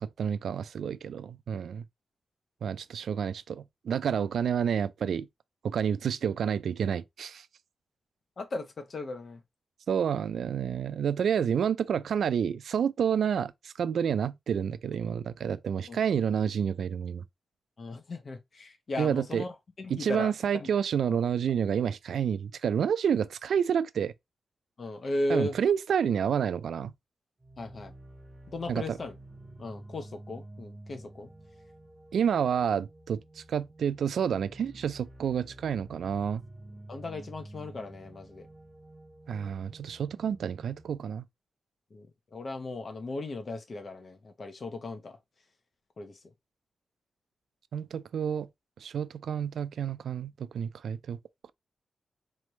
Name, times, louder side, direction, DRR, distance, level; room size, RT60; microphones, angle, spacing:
voice 1, 0.0-1.8 2.6-5.3 5.6-7.5 9.9-17.2 19.0-19.4 19.9-24.1 25.3-26.9 28.7-29.0 32.1-36.4 39.3-41.2 47.7-48.5 48.8-51.2, right 8 dB, 90° right, 0.3 m, -29 dB
voice 2, 8.4-9.4 15.9-16.0 17.8-20.3 20.6-20.7 24.8-25.6 27.6-27.9 28.5-29.1 29.6-31.3 36.9-38.5 41.9-45.2 46.0-46.2, left 2 dB, 40° left, 0.9 m, -36 dB
sound 1, 27.4-41.1, right 1 dB, 15° right, 0.6 m, -50 dB
4.1 x 3.2 x 3.1 m
wide cardioid pair, 170°, 0 cm